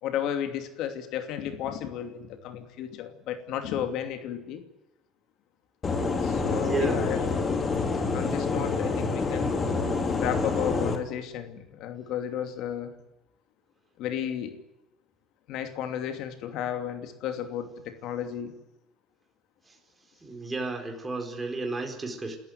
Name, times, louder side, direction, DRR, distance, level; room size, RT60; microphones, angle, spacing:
voice 1, 0.0-4.6 6.2-7.2 8.1-9.6 10.2-13.0 14.0-14.6 15.5-18.5, left 9 dB, 70° left, 8 dB, 2.7 m, -33 dB
sound 1, 5.8-11.0, left 4 dB, 30° left, 3.1 m, -27 dB
voice 2, 6.5-7.0 19.7-19.8 20.2-22.4, right 3 dB, 15° right, 3 dB, 4.3 m, -32 dB
29.5 x 13.5 x 9.4 m, 0.98 s
cardioid pair, 120°, 0 cm